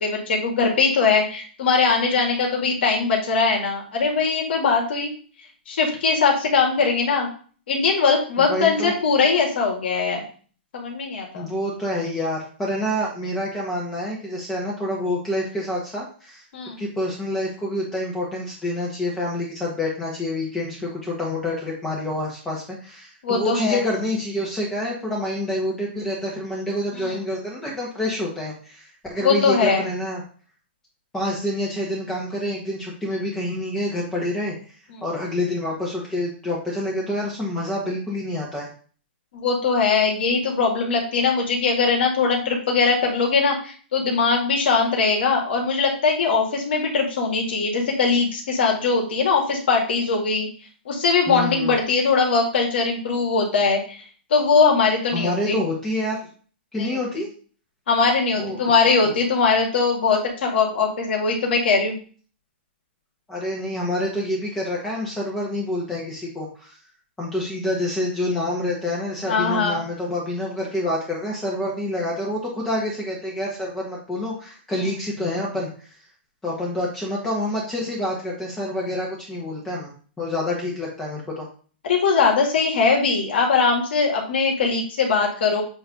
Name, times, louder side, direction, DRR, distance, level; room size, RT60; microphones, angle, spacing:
voice 1, 0.0-5.1 5.7-7.3 7.7-10.2 10.7-11.5 16.5-16.8 23.2-23.8 26.9-27.2 29.2-29.9 34.9-35.0 39.3-50.5 50.9-54.0 54.3-55.6 56.8-57.0 57.9-62.0 69.3-69.8 74.7-74.8 81.8-85.6, left 4 dB, 70° left, 0 dB, 2.2 m, -21 dB
voice 2, 8.4-8.9 11.3-16.4 16.8-30.2 31.1-34.6 35.0-38.7 51.3-51.7 55.1-56.2 56.7-57.3 58.4-58.6 59.0-59.1 63.3-66.8 67.2-75.9 76.4-79.9 80.2-81.5, left 1 dB, 10° left, -4 dB, 1.4 m, -27 dB
7.9 x 3.2 x 5.1 m, 0.42 s
hypercardioid pair, 145°, 6 cm